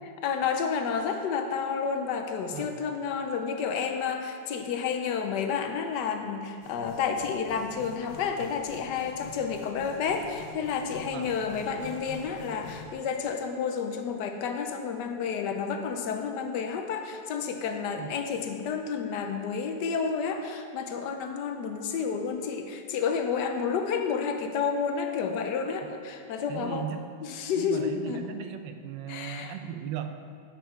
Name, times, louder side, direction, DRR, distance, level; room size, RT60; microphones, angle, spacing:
voice 1, 0.2-26.9 27.2-28.2 29.1-29.5, left 6 dB, 75° left, 6 dB, 1.2 m, -30 dB
voice 2, 2.5-2.8 11.1-11.3 18.0-18.1 26.5-27.1 27.6-30.2, right 9 dB, 85° right, 7 dB, 1.3 m, -37 dB
sound 1, 6.6-12.9, left 5 dB, 45° left, 0.9 m, -46 dB
7.6 x 5.7 x 5.6 m, 2.2 s
omnidirectional pair, 2.0 m